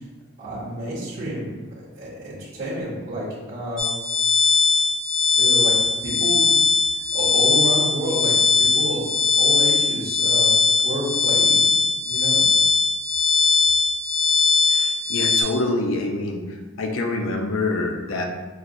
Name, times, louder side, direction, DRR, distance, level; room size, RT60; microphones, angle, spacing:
voice 1, 0.4-3.9 5.4-5.7 6.0-6.6 7.1-8.3 8.6-9.1 9.4-10.5 10.8-11.7 12.1-12.4, equal, 45° right, -11 dB, 0.9 m, -29 dB
sound 1, 3.8-15.4, left 4 dB, 5° left, 0.3 m, -19 dB
voice 2, 14.7-16.4 16.8-18.2, left 2 dB, 70° left, 2 dB, 0.5 m, -25 dB
5.8 x 2.1 x 2.5 m, 1.2 s
head